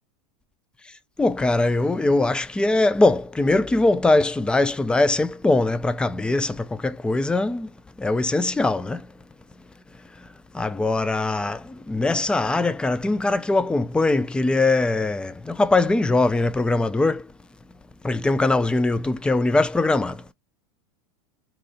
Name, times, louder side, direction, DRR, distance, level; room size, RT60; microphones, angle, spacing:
voice 1, 1.2-7.7 8.0-9.1 10.5-17.3 18.0-20.2, left 2 dB, 5° left, 0.3 m, -21 dB
4.0 x 2.6 x 2.5 m
supercardioid pair, 125°, 17 cm